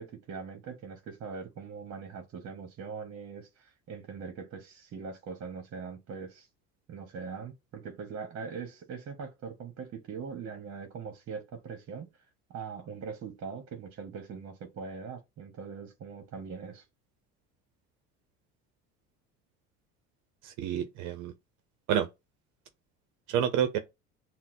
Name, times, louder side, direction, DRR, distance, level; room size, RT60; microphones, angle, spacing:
voice 1, 0.0-6.5 6.9-12.1 12.5-16.8, right 5 dB, 50° right, 1.0 m, -41 dB
voice 2, 20.4-21.3 21.9-22.1 23.3-23.8, right 9 dB, 70° right, 0.7 m, -28 dB
5.7 x 2.2 x 2.7 m
supercardioid pair, 85°, 31 cm